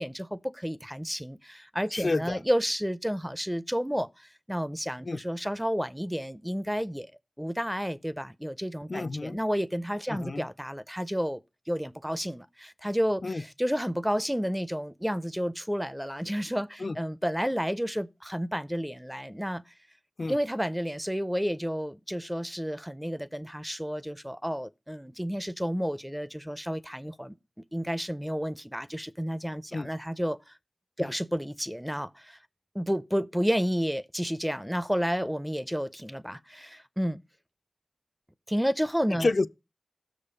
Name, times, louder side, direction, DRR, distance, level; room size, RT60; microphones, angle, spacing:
voice 1, 0.0-7.1 7.4-11.4 11.7-19.7 20.3-27.4 27.7-30.6 31.0-32.4 32.7-37.2 38.5-39.3, equal, 5° right, 0.4 m, -31 dB
voice 2, 1.9-2.4 5.0-5.2 8.9-9.4 10.1-10.5 13.2-13.4 16.8-17.0 20.2-20.4 29.7-29.9 31.0-31.1 39.2-39.5, left 3 dB, 65° left, 0.4 m, -29 dB
6.6 x 5.0 x 5.5 m
wide cardioid pair, 55°, 0 cm